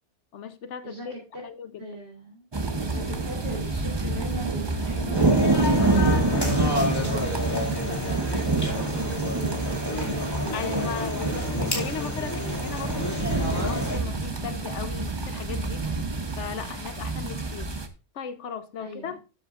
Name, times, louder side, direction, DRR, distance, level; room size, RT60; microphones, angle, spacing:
voice 1, 0.3-1.1 1.4-2.0 10.5-15.9 16.4-17.7 18.1-19.2, left 7 dB, 85° left, 1.2 m, -37 dB
voice 2, 0.8-1.4 1.8-2.5 2.8-8.4 9.3-10.9 11.7-12.6 18.8-19.1, equal, 70° right, 3.5 m, -39 dB
sound 1, 2.5-17.9, right 3 dB, 25° right, 0.9 m, -27 dB
sound 2, 5.1-14.0, left 2 dB, 20° left, 2.4 m, -30 dB
12.5 x 7.6 x 2.5 m
omnidirectional pair, 1.2 m